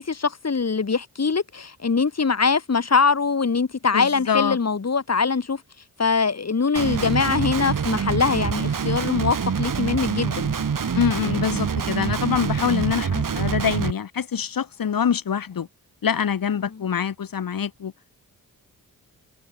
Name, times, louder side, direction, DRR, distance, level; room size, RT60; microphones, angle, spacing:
voice 1, 0.0-5.6 6.0-10.5, left 5 dB, 45° left, 4.4 m, -22 dB
voice 2, 3.9-4.6 10.9-15.7 16.0-17.9, left 7 dB, 75° left, 3.7 m, -25 dB
Guitar, 6.7-13.9, right 6 dB, 65° right, 5.5 m, -25 dB
cardioid pair, 60°, 35 cm